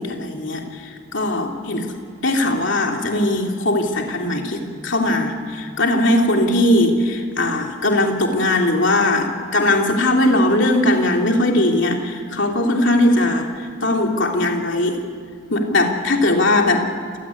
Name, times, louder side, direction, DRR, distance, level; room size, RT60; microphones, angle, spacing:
voice 1, 0.0-1.9 2.2-15.0 15.5-16.8, left 1 dB, 60° left, 2 dB, 3.3 m, -19 dB
29.0 x 17.0 x 9.8 m, 2.3 s
head